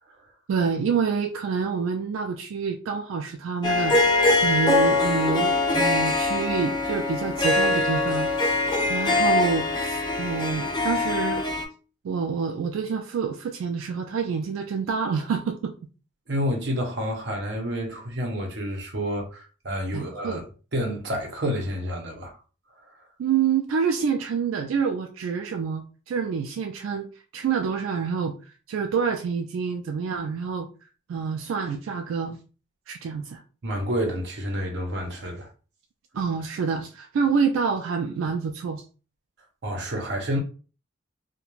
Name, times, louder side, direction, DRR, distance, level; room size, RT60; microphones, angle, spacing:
voice 1, 0.5-8.3 8.9-11.4 12.0-15.7 19.9-20.4 23.2-27.1 27.3-28.4 28.7-30.7 31.1-32.4 32.9-33.4 36.2-38.8, right 6 dB, 85° right, 0.3 m, -27 dB
Harp, 3.6-11.6, left 2 dB, 20° left, 0.4 m, -23 dB
voice 2, 16.3-20.4 20.7-22.4 33.6-35.5 39.6-40.4, equal, 55° right, 0.7 m, -29 dB
2.4 x 2.1 x 3.0 m
head